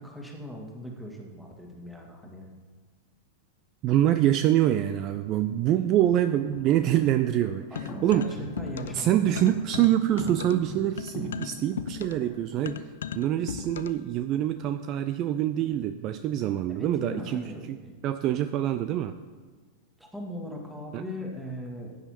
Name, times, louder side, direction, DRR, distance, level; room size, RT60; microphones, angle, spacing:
voice 1, 0.0-2.5 7.7-9.9 16.7-17.9 20.0-21.9, equal, 5° right, 0 dB, 1.8 m, -39 dB
voice 2, 3.8-8.3 8.9-17.8 18.0-19.2 20.9-21.0, right 12 dB, 35° right, 11 dB, 0.4 m, -25 dB
sound 1, 5.0-5.1 5.8-12.3, left 1 dB, 35° left, 1.8 m, -40 dB
sound 2, 7.8-9.1 9.4-14.1, left 8 dB, 65° left, 0.4 m, -37 dB
15.5 x 8.9 x 2.9 m, 1.4 s
figure-of-eight pair, 90°, 0 cm